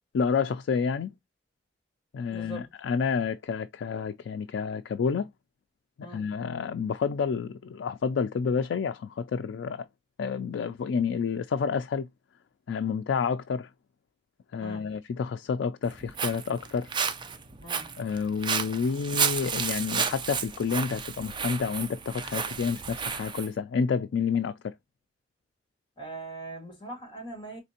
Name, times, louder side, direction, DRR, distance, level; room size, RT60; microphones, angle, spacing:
voice 1, 0.1-1.1 2.1-5.3 6.0-9.9 10.2-12.1 12.7-13.7 14.5-16.9 18.0-24.7, left 6 dB, 85° left, 0.3 m, -29 dB
voice 2, 2.3-2.7 6.0-6.3 14.6-14.9 17.6-18.0 26.0-27.6, right 2 dB, 25° left, 1.8 m, -41 dB
Walk footsteps, 15.8-23.5, right 6 dB, 25° right, 0.5 m, -32 dB
4.2 x 3.2 x 2.7 m
head